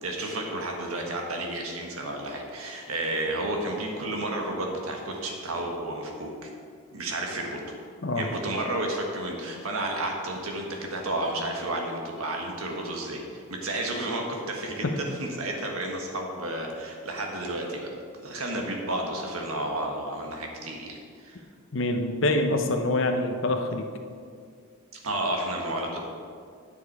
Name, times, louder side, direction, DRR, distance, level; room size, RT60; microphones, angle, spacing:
voice 1, 0.0-6.5 6.9-7.7 8.1-17.9 18.2-21.4 25.0-26.1, right 1 dB, 80° right, 1 dB, 1.5 m, -31 dB
voice 2, 21.7-23.8, left 2 dB, 60° left, 5 dB, 0.8 m, -25 dB
9.5 x 6.9 x 4.8 m, 2.2 s
head